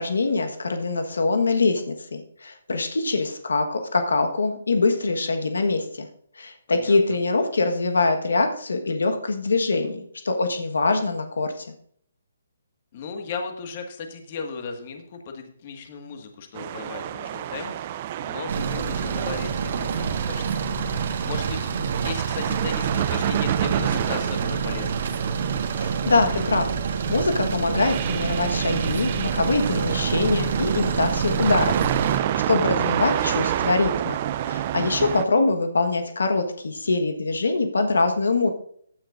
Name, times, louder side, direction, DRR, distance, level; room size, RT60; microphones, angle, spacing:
voice 1, 0.0-6.1 6.4-11.7 25.8-34.2 34.5-38.5, left 3 dB, 90° left, 6 dB, 1.4 m, -24 dB
voice 2, 6.7-7.2 12.9-25.3 32.8-33.2, left 5 dB, 40° left, 4 dB, 1.8 m, -37 dB
sound 1, 16.5-35.3, right 11 dB, 30° right, 0.5 m, -29 dB
sound 2, 18.5-32.2, right 6 dB, 55° right, 1.5 m, -27 dB
15.5 x 9.6 x 2.6 m, 0.62 s
hypercardioid pair, 160°, 0 cm